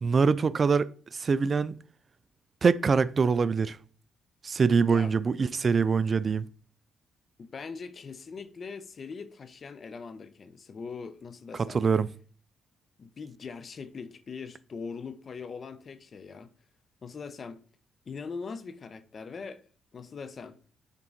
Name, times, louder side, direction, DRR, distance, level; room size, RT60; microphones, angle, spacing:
voice 1, 0.0-1.7 2.6-3.8 4.4-6.4 11.7-12.1, right 5 dB, 40° right, 0.3 m, -24 dB
voice 2, 7.4-11.8 13.0-16.5 17.0-17.6 18.0-19.6 19.9-20.6, left 5 dB, 45° left, 0.7 m, -41 dB
7.4 x 3.7 x 3.8 m
cardioid pair, 90°, 0 cm